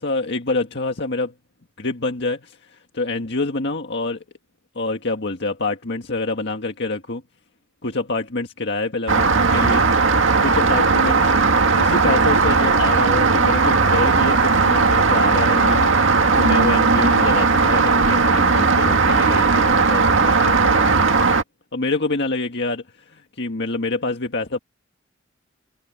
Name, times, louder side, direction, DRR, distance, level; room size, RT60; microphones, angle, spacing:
voice 1, 0.0-1.3 1.8-4.2 4.7-7.2 7.8-9.9 10.4-11.4 11.8-21.1 21.7-24.6, left 3 dB, 60° left, 1.8 m, -26 dB
Rain, 9.1-21.4, right 4 dB, 75° right, 2.0 m, -17 dB
head